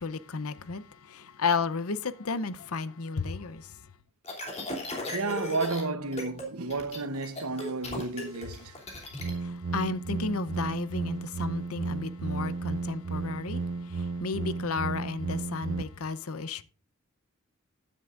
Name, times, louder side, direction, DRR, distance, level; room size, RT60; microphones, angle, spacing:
voice 1, 0.0-3.8 8.7-16.6, left 4 dB, 85° left, 0.8 m, -33 dB
sound 1, 4.2-5.8 6.1-6.5 6.7-9.3, left 2 dB, 30° left, 2.9 m, -36 dB
voice 2, 5.1-8.7, right 3 dB, 90° right, 1.0 m, -32 dB
sound 2, 9.2-15.8, right 4 dB, 55° right, 0.5 m, -33 dB
15.0 x 10.0 x 2.5 m
head